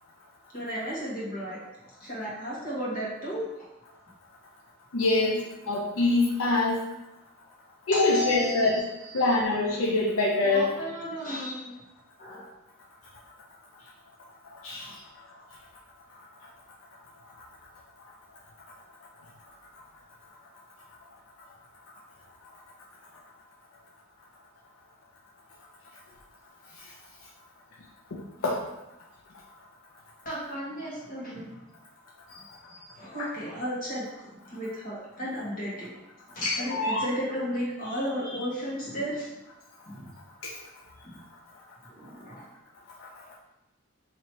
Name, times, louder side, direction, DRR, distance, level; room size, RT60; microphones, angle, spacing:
voice 1, 0.5-3.7 7.9-9.3 10.4-11.8 12.2-12.5 14.6-15.0 30.2-31.6 32.3-35.9 36.3-39.3 39.8-40.1 41.0-41.2 41.9-42.5, equal, 40° left, -7 dB, 1.5 m, -34 dB
voice 2, 4.9-6.8 7.9-8.8 9.1-10.7 14.6-14.9 28.1-28.6 33.2-33.3 36.7-37.0 40.4-40.5, left 2 dB, 75° left, -3 dB, 0.5 m, -25 dB
2.9 x 2.9 x 4.5 m, 0.96 s
head